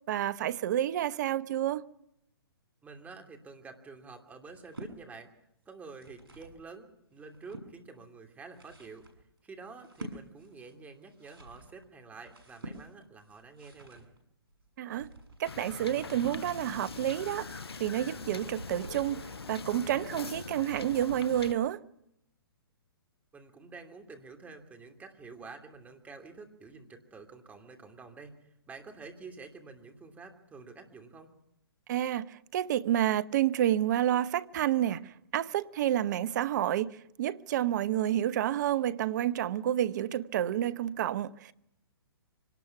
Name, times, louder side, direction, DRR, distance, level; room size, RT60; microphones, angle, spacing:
voice 1, 0.1-1.8 14.8-15.1 15.4-21.8 31.9-41.5, right 11 dB, 45° right, 0.9 m, -29 dB
voice 2, 2.8-5.3 5.7-9.0 9.4-14.1 23.3-31.3, right 4 dB, 10° right, 2.9 m, -49 dB
sound 1, 4.5-5.0 5.7-6.6 7.1-7.7 8.3-19.1, right 1 dB, 75° right, 7.0 m, -49 dB
Wind / Boat Water vehicle, 15.5-21.5, left 5 dB, 80° left, 1.1 m, -42 dB
25.0 x 18.5 x 5.9 m
figure-of-eight pair, 130°, 13 cm